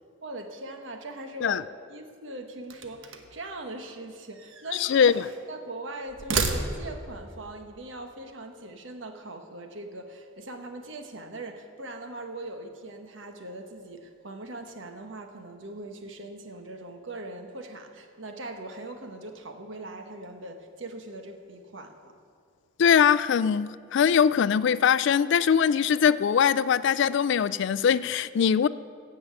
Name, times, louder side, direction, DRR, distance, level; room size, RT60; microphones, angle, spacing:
voice 1, 0.2-1.6 1.9-5.2 5.5-22.1, right 2 dB, 70° right, 5 dB, 1.2 m, -41 dB
sound 1, 2.6-3.4 4.3-5.4 6.1-7.1, right 4 dB, 90° right, 1.1 m, -32 dB
voice 2, 4.8-5.3 22.8-28.7, left 7 dB, 65° left, 17 dB, 0.3 m, -22 dB
16.0 x 5.5 x 8.1 m, 2.2 s
head